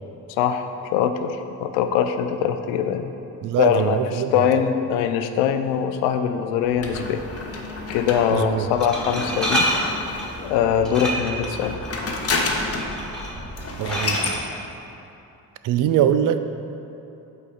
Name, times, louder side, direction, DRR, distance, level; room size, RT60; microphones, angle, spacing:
voice 1, 0.3-0.7 0.9-3.1 3.6-7.2 7.9-9.7 10.4-11.8, left 8 dB, 65° left, 8 dB, 0.6 m, -22 dB
voice 2, 3.4-4.3 8.3-8.7 13.8-14.2 15.6-16.4, right 10 dB, 45° right, 10 dB, 0.5 m, -22 dB
Glass, 6.6-14.4, equal, ahead, 1.5 m, -30 dB
sound 1, 6.8-10.5 11.4-13.0 13.3-13.4 13.6-14.4, left 3 dB, 30° left, 0.9 m, -29 dB
8.4 x 4.1 x 3.9 m, 2.8 s
figure-of-eight pair, 45°, 49 cm